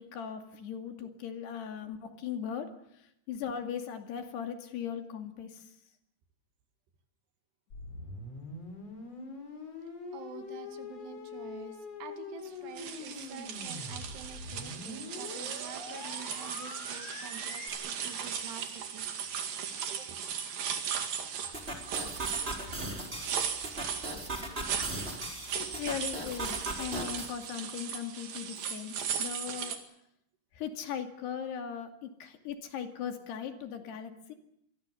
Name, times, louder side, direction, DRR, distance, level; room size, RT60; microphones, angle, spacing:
voice 1, 0.0-5.7 22.6-22.9 25.5-29.8 30.5-34.4, left 8 dB, 75° left, 5 dB, 4.4 m, -39 dB
sound 1, 7.7-17.7, left 3 dB, 35° left, 5.6 m, -44 dB
voice 2, 10.1-19.1 19.9-20.1, right 8 dB, 75° right, 7 dB, 4.1 m, -48 dB
sound 2, 12.8-29.8, right 7 dB, 60° right, 3.7 m, -37 dB
sound 3, 21.5-27.3, right 2 dB, 15° right, 4.4 m, -38 dB
27.5 x 22.5 x 7.0 m, 0.75 s
omnidirectional pair, 4.8 m